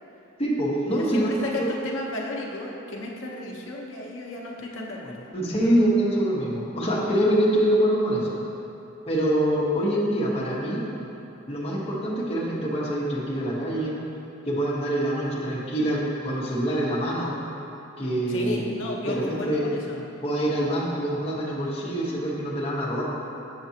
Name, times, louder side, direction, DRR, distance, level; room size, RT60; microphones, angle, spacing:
voice 1, 0.4-1.7 5.3-8.4 9.1-10.8 11.5-14.0 14.5-17.3 18.0-18.7 19.1-19.6 20.2-23.0, right 1 dB, 30° left, -6 dB, 1.0 m, -25 dB
voice 2, 0.9-5.3 18.3-20.0, left 2 dB, 75° left, -2 dB, 0.8 m, -33 dB
6.6 x 5.9 x 2.8 m, 2.8 s
head